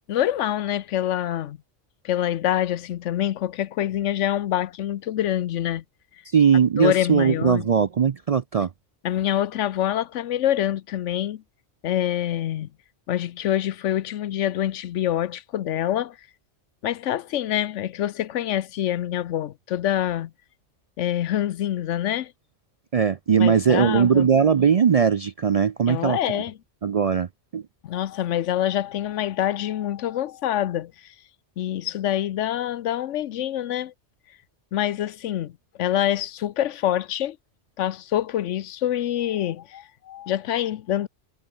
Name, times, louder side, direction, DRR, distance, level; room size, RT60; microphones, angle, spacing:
voice 1, 0.1-1.6 2.0-5.8 6.8-7.7 9.0-11.4 11.8-12.7 13.1-16.2 16.8-20.3 21.0-22.3 23.4-24.3 25.9-26.5 27.8-31.1 31.6-33.9 34.7-35.5 35.8-37.4 37.8-41.1, left 11 dB, 80° left, 1.0 m, -26 dB
voice 2, 6.3-8.7 22.9-26.4 26.8-27.3 27.5-27.6, right 7 dB, 60° right, 0.4 m, -20 dB
omnidirectional pair, 1.2 m